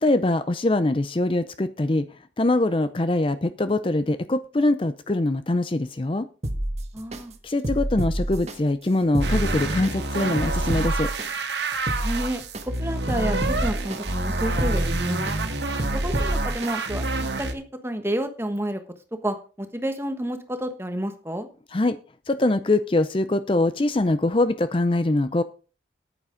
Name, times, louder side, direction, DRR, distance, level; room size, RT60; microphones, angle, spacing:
voice 1, 0.0-2.1 2.4-6.3 7.4-11.1 21.7-22.0 22.3-25.4, left 2 dB, 30° left, 12 dB, 0.5 m, -23 dB
sound 1, 6.4-7.2 7.6-8.6 9.0-9.9 10.4-11.3 11.7-12.6 13.1-14.0 14.4-15.4 15.8-16.7 17.2-17.3, right 1 dB, 35° right, 1.5 m, -27 dB
voice 2, 6.9-7.3 12.0-15.3 15.9-17.0 17.4-18.8 19.2-21.5, right 1 dB, 15° right, 7 dB, 1.3 m, -30 dB
sound 2, 9.2-17.5, right 3 dB, 80° right, 1.9 m, -28 dB
10.0 x 9.2 x 5.1 m, 0.36 s
head